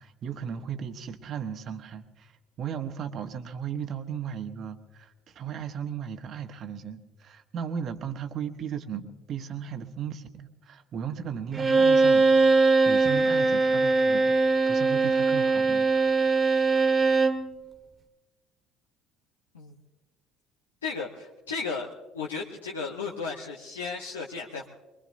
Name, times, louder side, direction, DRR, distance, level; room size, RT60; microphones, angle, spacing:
voice 1, 0.0-2.3 2.6-14.3 14.7-15.9 16.2-16.3, right 8 dB, 50° right, 8 dB, 1.1 m, -36 dB
Bowed string instrument, 11.5-17.5, right 3 dB, 30° right, 1.5 m, -21 dB
voice 2, 20.8-21.9 22.1-24.7, left 5 dB, 85° left, -2 dB, 0.9 m, -34 dB
23.5 x 22.0 x 2.6 m, 1.2 s
figure-of-eight pair, 55°, 0 cm